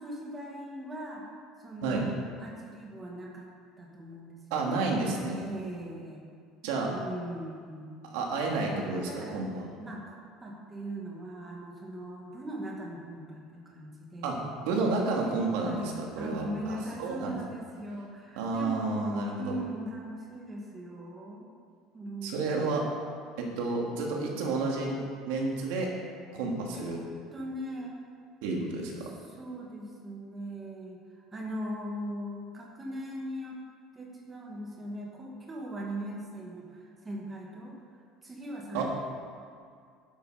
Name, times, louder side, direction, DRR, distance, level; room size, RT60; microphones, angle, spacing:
voice 1, 0.0-1.3 1.6-3.5 3.8-5.1 5.4-6.3 6.9-7.9 9.1-9.4 9.8-14.5 15.6-21.5 21.9-22.8 26.7-26.9 27.3-27.9 29.0-33.6 33.9-38.8, right 1 dB, 15° right, -2 dB, 2.2 m, -40 dB
voice 2, 4.5-5.4 6.6-6.9 8.1-9.6 14.2-14.3 14.6-17.3 18.4-19.6 22.2-22.8 23.4-25.0 25.3-25.9 26.3-27.0 28.4-29.0 38.7-38.8, right 3 dB, 80° right, -1 dB, 2.9 m, -30 dB
12.5 x 11.5 x 5.3 m, 2.2 s
cardioid pair, 170°, 0 cm